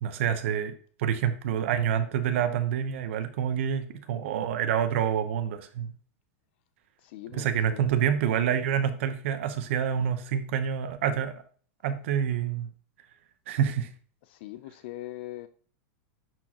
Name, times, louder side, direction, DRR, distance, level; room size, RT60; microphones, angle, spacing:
voice 1, 0.0-6.0 7.3-11.4 11.8-12.7 13.5-13.9, right 8 dB, 60° right, 9 dB, 0.8 m, -27 dB
voice 2, 7.0-7.9 14.3-15.5, left 15 dB, 50° left, 12 dB, 0.4 m, -41 dB
10.0 x 4.5 x 2.9 m, 0.44 s
supercardioid pair, 170°, 8 cm